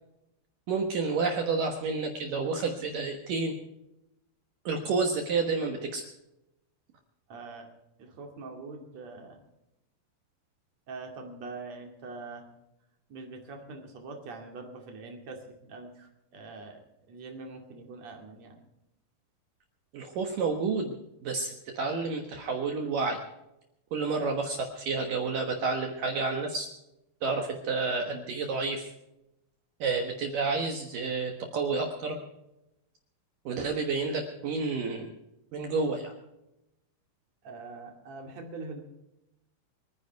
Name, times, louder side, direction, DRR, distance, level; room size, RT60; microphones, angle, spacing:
voice 1, 0.7-3.5 4.7-6.0 19.9-21.0 21.2-23.2 23.9-26.7 27.2-28.9 29.8-32.2 33.5-35.1 35.5-36.1, right 4 dB, 65° right, 3 dB, 2.3 m, -30 dB
voice 2, 7.3-7.7 8.0-9.4 10.9-12.5 13.1-16.8 17.1-18.6 37.4-38.8, right 3 dB, 45° right, 2 dB, 2.8 m, -43 dB
26.0 x 9.9 x 4.6 m, 0.89 s
omnidirectional pair, 5.5 m